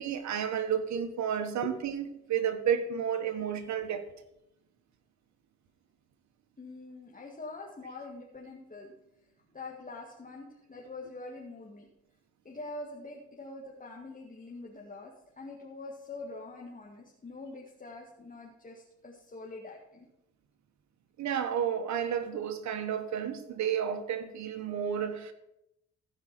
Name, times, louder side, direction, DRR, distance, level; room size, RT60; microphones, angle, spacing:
voice 1, 0.0-4.0 21.2-25.3, right 8 dB, 70° right, 1.3 m, -31 dB
voice 2, 6.6-8.9 9.5-11.9 12.4-20.1, left 3 dB, 25° left, 1.9 m, -44 dB
15.5 x 5.1 x 6.0 m
cardioid pair, 90°, 30 cm